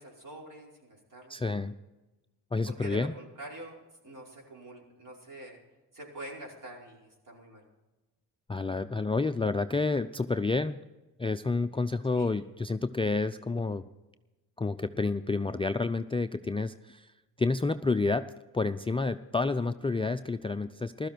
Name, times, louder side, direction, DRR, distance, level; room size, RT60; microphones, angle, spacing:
voice 1, 0.0-1.4 2.7-3.8 4.0-5.6 5.9-7.6 12.1-12.4, right 1 dB, 50° right, -1 dB, 5.1 m, -45 dB
voice 2, 1.3-1.7 2.5-3.1 8.5-10.8 11.2-13.8 14.6-17.1 17.4-18.3 18.5-21.1, left 3 dB, 15° left, 8 dB, 0.4 m, -29 dB
15.5 x 13.0 x 4.5 m, 1.1 s
cardioid pair, 70°, 41 cm